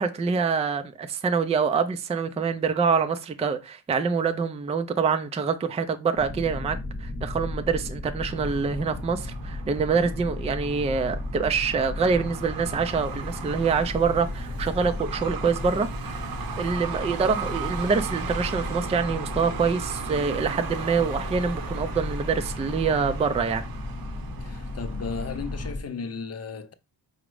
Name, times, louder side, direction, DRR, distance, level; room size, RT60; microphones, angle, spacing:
voice 1, 0.0-16.3 16.6-23.6, right 5 dB, 15° right, 0.3 m, -25 dB
sound 1, 6.2-25.8, left 2 dB, 25° left, 0.9 m, -34 dB
Truck, 8.3-25.7, right 7 dB, 60° right, 0.7 m, -38 dB
voice 2, 24.4-26.7, left 5 dB, 40° left, 0.5 m, -35 dB
5.0 x 2.0 x 4.6 m
wide cardioid pair, 125°, 41 cm